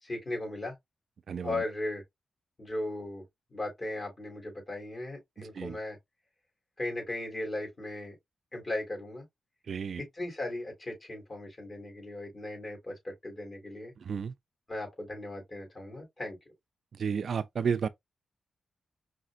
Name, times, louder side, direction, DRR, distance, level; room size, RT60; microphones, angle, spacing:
voice 1, 0.0-0.8 1.4-2.0 2.6-3.2 3.5-6.0 6.8-8.2 8.5-9.2 10.0-13.9 14.7-16.4, left 2 dB, 35° left, 3.6 m, -37 dB
voice 2, 1.3-1.6 5.4-5.8 9.7-10.0 14.0-14.3 17.0-17.9, right 6 dB, 65° right, 0.4 m, -32 dB
5.0 x 3.7 x 2.4 m
cardioid pair, 85°, 0 cm